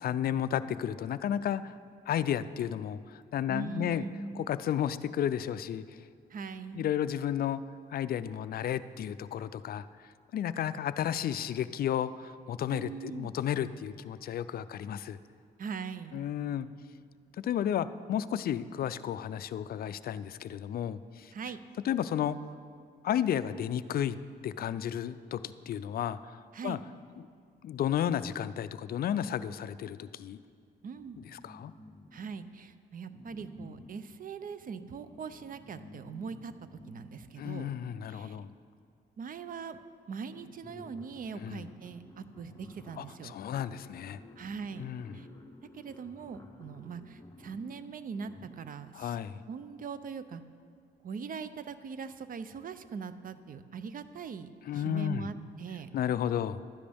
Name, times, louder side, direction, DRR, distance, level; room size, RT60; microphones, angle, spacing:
voice 1, 0.0-1.8 2.1-4.0 4.4-6.0 6.7-7.6 7.9-9.9 10.3-15.2 16.1-16.7 17.4-21.3 21.8-22.4 23.0-24.2 24.4-26.8 27.6-30.4 31.3-31.7 37.4-38.5 41.3-41.6 43.0-44.2 44.8-45.3 48.9-49.4 54.6-55.3 55.9-56.6, left 10 dB, 50° left, 14 dB, 0.4 m, -32 dB
voice 2, 3.5-4.5 6.3-6.9 12.7-13.3 15.6-16.2 21.3-21.6 26.5-26.8 30.8-31.2 32.1-36.5 36.9-37.8 38.1-38.4 39.2-39.8 40.1-43.4 44.4-45.3 45.7-49.2 49.5-50.4 51.0-55.9, right 5 dB, 45° right, 12 dB, 0.5 m, -41 dB
sound 1, 30.8-32.6 33.1-38.8 39.7-39.8 40.1-48.9, left 1 dB, 15° left, 1.0 m, -53 dB
12.0 x 10.0 x 3.5 m, 2.2 s
cardioid pair, 90°, 20 cm